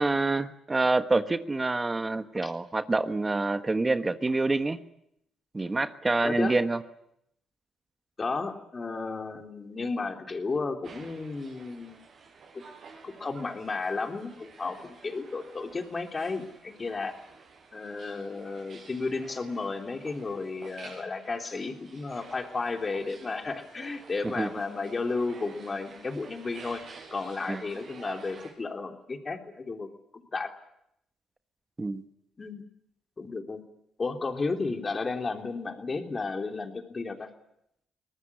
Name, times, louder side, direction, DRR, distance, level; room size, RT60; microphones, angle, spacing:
voice 1, 0.0-4.8 5.5-6.8 24.2-24.5 27.5-27.6 31.8-32.0, right 3 dB, 20° right, 10 dB, 1.3 m, -27 dB
voice 2, 6.2-6.6 8.2-12.0 12.5-12.6 13.0-17.2 17.7-26.8 27.1-29.9 30.3-30.5 32.4-32.6 33.2-33.6 34.0-37.3, left 3 dB, 30° left, 4 dB, 3.4 m, -33 dB
sound 1, 10.8-28.5, right 5 dB, 55° right, 6.6 m, -50 dB
22.5 x 19.0 x 9.7 m, 0.78 s
cardioid pair, 90°, 0 cm